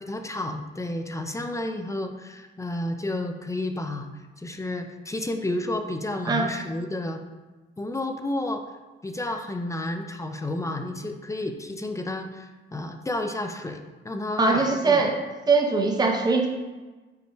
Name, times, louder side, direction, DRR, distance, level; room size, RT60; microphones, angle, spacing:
voice 1, 0.0-4.1 4.4-7.2 7.8-8.6 9.0-13.8 14.0-15.0, left 1 dB, 15° left, 6 dB, 0.6 m, -31 dB
voice 2, 14.4-15.2 15.5-16.5, right 3 dB, 20° right, 2 dB, 0.8 m, -21 dB
5.2 x 4.8 x 4.6 m, 1.2 s
cardioid pair, 90°, 20 cm